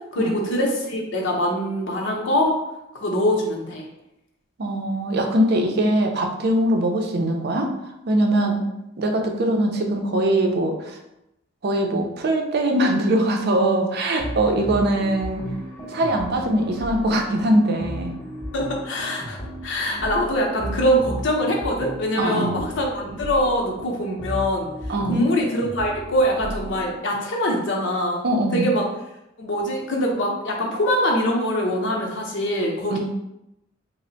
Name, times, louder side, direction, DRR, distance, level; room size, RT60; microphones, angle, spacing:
voice 1, 0.1-2.6 2.9-3.8 18.5-24.7 25.1-28.2 28.5-28.8 29.4-33.0, equal, 70° left, 0 dB, 0.7 m, -23 dB
voice 2, 4.6-7.7 8.1-8.6 9.0-11.0 11.6-15.4 15.9-18.1 22.2-22.6 24.9-25.3 28.2-28.7 32.9-33.0, right 1 dB, 60° right, 3 dB, 0.5 m, -22 dB
sound 1, 14.2-27.0, equal, 10° left, 0.6 m, -35 dB
3.2 x 2.1 x 3.8 m, 0.87 s
head